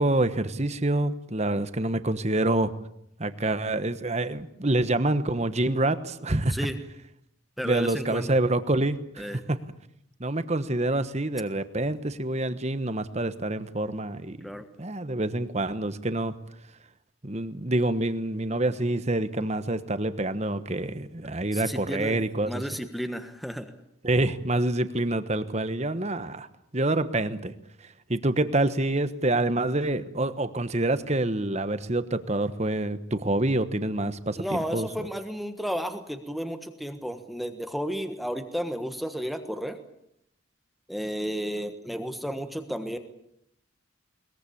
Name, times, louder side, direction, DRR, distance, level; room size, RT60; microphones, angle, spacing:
voice 1, 0.0-2.7 3.2-6.6 7.6-9.6 10.2-14.5 14.8-16.3 17.2-22.6 24.0-26.5 26.7-27.5 28.1-34.9, right 2 dB, 30° right, 12 dB, 1.2 m, -27 dB
voice 2, 7.6-8.3 9.2-9.4 14.4-14.7 21.5-22.2 22.5-23.7 34.4-39.8 40.9-43.0, equal, ahead, 7 dB, 1.3 m, -32 dB
22.0 x 21.0 x 8.6 m, 0.76 s
head